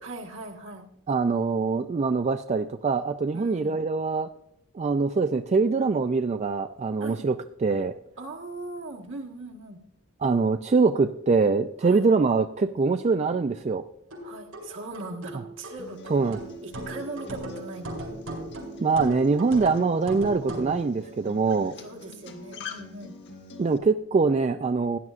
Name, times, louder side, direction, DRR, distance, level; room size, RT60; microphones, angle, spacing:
voice 1, 0.0-0.9 3.3-3.8 7.0-7.3 8.2-9.8 11.8-12.1 14.2-16.0 16.6-18.1 21.8-23.1, right 2 dB, 60° right, 1 dB, 1.5 m, -39 dB
voice 2, 1.1-4.3 4.7-7.4 7.6-7.9 10.2-13.8 16.1-16.4 18.8-21.7 23.6-25.0, right 4 dB, 30° right, 8 dB, 0.3 m, -23 dB
sound 1, 14.1-20.8, right 1 dB, 85° right, 4.9 m, -38 dB
Acoustic guitar, 15.8-23.8, left 2 dB, 55° left, 1.3 m, -44 dB
17.0 x 10.5 x 2.5 m, 0.78 s
head